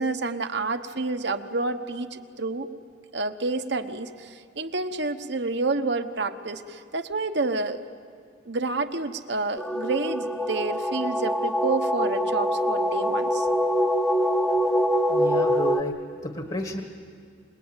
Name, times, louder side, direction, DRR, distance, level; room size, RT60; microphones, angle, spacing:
voice 1, 0.0-2.7 3.1-7.9 8.4-13.5, right 3 dB, 65° right, 7 dB, 1.1 m, -29 dB
sound 1, 9.6-15.8, equal, 5° left, 0.8 m, -24 dB
voice 2, 15.1-16.8, left 2 dB, 35° left, 5 dB, 1.4 m, -32 dB
26.5 x 20.5 x 9.0 m, 2.2 s
head